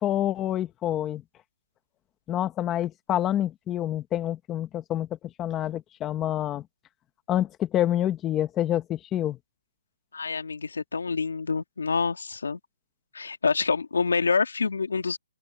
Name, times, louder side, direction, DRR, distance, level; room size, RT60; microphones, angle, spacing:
voice 1, 0.0-1.2 2.3-5.1 5.4-6.6 7.3-9.4, left 12 dB, 10° left, 1.1 m, -27 dB
voice 2, 10.1-12.6 13.1-15.2, left 5 dB, 90° left, 2.6 m, -27 dB
hypercardioid pair, 170°, 0 cm